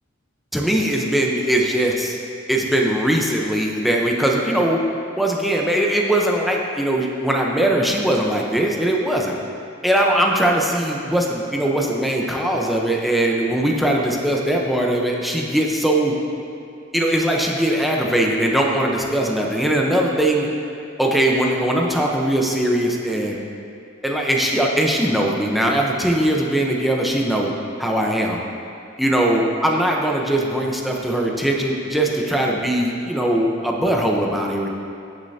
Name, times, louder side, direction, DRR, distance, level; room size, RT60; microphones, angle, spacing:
voice 1, 0.5-2.2 2.5-4.8 5.1-9.3 9.8-16.1 16.9-20.5 21.0-23.4 24.0-27.5 27.8-28.4 29.0-34.7, right 1 dB, ahead, -1 dB, 0.9 m, -20 dB
15.5 x 6.7 x 2.8 m, 2.7 s
head